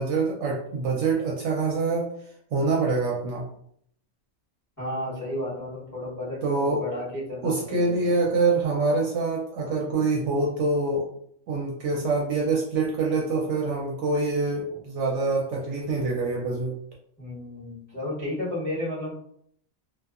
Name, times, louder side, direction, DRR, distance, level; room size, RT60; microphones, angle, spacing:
voice 1, 0.0-2.1 2.5-3.4 6.4-6.8 7.4-11.1 11.5-16.8, right 3 dB, 70° right, -1 dB, 0.8 m, -25 dB
voice 2, 4.8-8.1 9.9-10.0 14.7-14.8 17.2-19.1, left 1 dB, 15° left, -10 dB, 1.3 m, -33 dB
2.6 x 2.3 x 2.4 m, 0.66 s
omnidirectional pair, 1.3 m